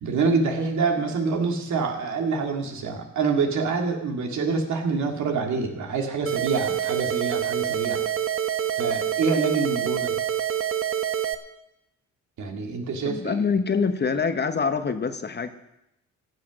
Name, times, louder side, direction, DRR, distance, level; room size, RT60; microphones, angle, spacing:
voice 1, 0.0-8.0 8.8-10.2 12.4-13.4, right 4 dB, 70° right, 2 dB, 2.4 m, -26 dB
sound 1, 6.3-11.3, right 10 dB, 45° right, 0.9 m, -26 dB
voice 2, 13.0-15.5, left 5 dB, 35° left, 9 dB, 1.0 m, -25 dB
15.0 x 8.4 x 6.3 m, 0.86 s
cardioid pair, 90°, 30 cm